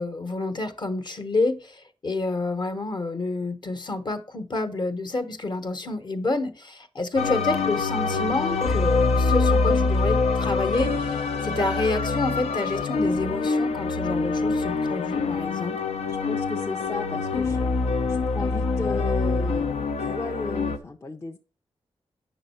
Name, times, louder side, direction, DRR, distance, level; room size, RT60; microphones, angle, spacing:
voice 1, 0.0-15.8, left 2 dB, 45° left, 1.1 m, -28 dB
sound 1, 7.2-20.8, left 4 dB, 80° left, 0.8 m, -25 dB
voice 2, 16.1-17.6 18.1-21.4, left 3 dB, 25° left, 0.6 m, -35 dB
8.9 x 6.3 x 4.3 m
wide cardioid pair, 130°, 11 cm